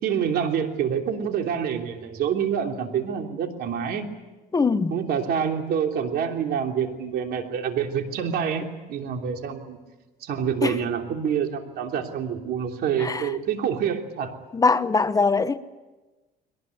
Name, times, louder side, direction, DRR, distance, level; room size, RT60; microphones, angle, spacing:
voice 1, 0.0-4.1 4.9-9.8 10.2-14.3, right 7 dB, 70° right, 3.2 m, -27 dB
voice 2, 4.5-4.9 10.6-10.7 13.0-13.2 14.5-15.6, left 4 dB, 20° left, 0.9 m, -21 dB
22.0 x 19.0 x 9.5 m
cardioid pair, 110°, 17 cm